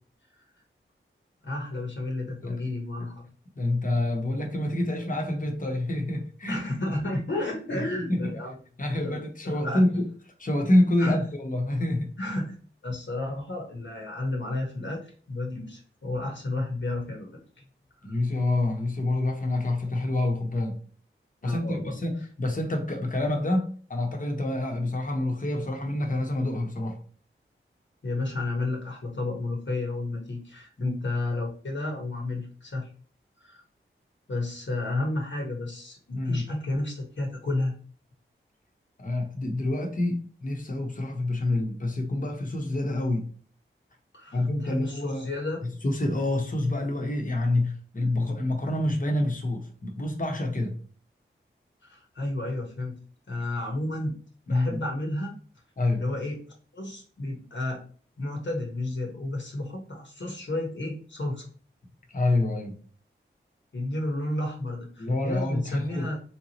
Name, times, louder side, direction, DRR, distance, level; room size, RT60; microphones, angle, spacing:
voice 1, 1.4-3.3 6.5-8.5 8.9-9.8 11.0-11.2 12.2-12.6 12.8-17.3 18.0-18.2 21.4-22.0 28.0-32.9 33.4-33.6 34.3-37.7 44.1-45.6 51.8-53.0 53.3-54.2 54.5-55.3 55.9-56.4 56.7-57.8 58.2-61.5 63.7-66.2, left 2 dB, 60° left, 1.1 m, -32 dB
voice 2, 3.6-6.9 8.1-8.3 8.8-10.1 10.4-12.1 18.0-20.8 21.4-27.0 30.8-31.0 36.1-36.5 39.0-43.3 44.3-45.3 45.6-50.7 54.5-54.8 55.8-56.0 62.1-62.7 65.0-66.1, left 1 dB, 40° left, 1.0 m, -27 dB
3.7 x 2.8 x 2.9 m
cardioid pair, 45°, 21 cm